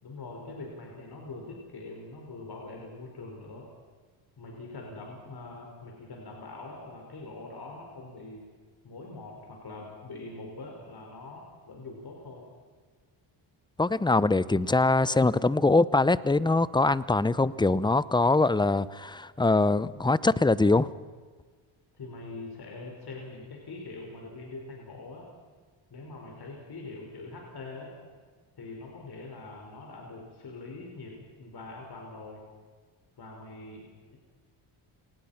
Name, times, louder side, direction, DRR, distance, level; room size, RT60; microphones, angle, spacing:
voice 1, 0.0-3.7 4.4-8.5 8.8-12.5 21.9-25.3 25.9-27.9 28.6-32.5 33.2-34.2, left 3 dB, 50° left, 0 dB, 5.3 m, -43 dB
voice 2, 13.8-20.9, left 3 dB, 10° left, 18 dB, 0.7 m, -23 dB
28.0 x 19.0 x 5.9 m, 1.5 s
cardioid pair, 80°, 50 cm